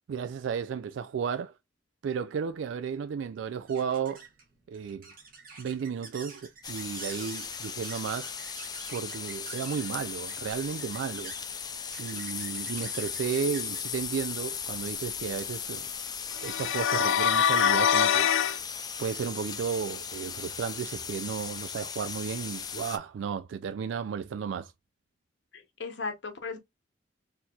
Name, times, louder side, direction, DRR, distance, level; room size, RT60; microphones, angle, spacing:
voice 1, 0.1-1.5 2.0-4.2 4.7-5.1 5.6-8.4 8.9-11.4 12.0-15.9 16.3-18.3 19.0-24.7, right 7 dB, 85° right, 0.3 m, -33 dB
sound 1, 2.5-15.4, right 4 dB, 50° right, 1.6 m, -48 dB
sound 2, 6.6-23.0, left 7 dB, 20° left, 0.4 m, -37 dB
sound 3, 16.4-18.6, left 8 dB, 90° left, 0.3 m, -24 dB
voice 2, 25.5-26.6, left 4 dB, 70° left, 0.9 m, -37 dB
4.4 x 2.7 x 2.3 m
head